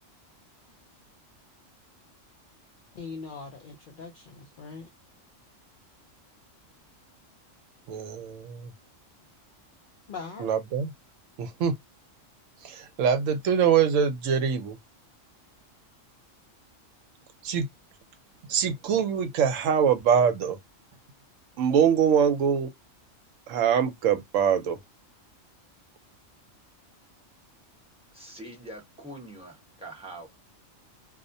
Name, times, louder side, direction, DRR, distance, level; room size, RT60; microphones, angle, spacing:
voice 1, 2.9-4.9 10.1-10.5, left 4 dB, 65° left, 0.5 m, -41 dB
voice 2, 7.9-8.7 10.4-10.9 11.4-11.8 12.6-14.8 17.4-17.7 18.5-20.6 21.6-22.7 23.5-24.8, right 7 dB, 80° right, 0.9 m, -24 dB
voice 3, 28.1-30.3, right 1 dB, 5° right, 0.8 m, -43 dB
2.4 x 2.0 x 2.6 m
omnidirectional pair, 1.4 m